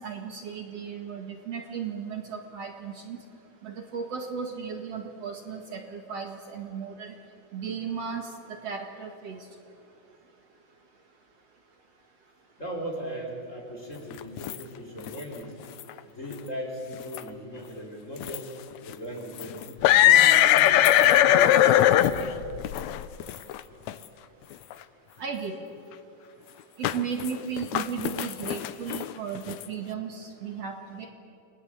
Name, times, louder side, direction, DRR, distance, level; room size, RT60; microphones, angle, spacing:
voice 1, 0.0-3.2 3.6-7.1 7.5-8.3 8.6-9.5 25.2-25.6 26.8-31.1, right 6 dB, 55° right, 3 dB, 2.6 m, -35 dB
voice 2, 12.6-15.5 16.1-18.5 18.9-22.3, equal, 25° left, -1 dB, 4.1 m, -38 dB
sound 1, 14.1-14.6 15.0-15.2 15.8-15.9 16.3-16.4 16.9-17.3 18.2-18.4 18.9-19.0 19.4-23.6 23.9-24.0 24.7-24.8 26.8-27.3 27.6-29.6, left 12 dB, 75° left, 1.9 m, -21 dB
29.0 x 21.0 x 8.0 m, 2.8 s
omnidirectional pair, 3.6 m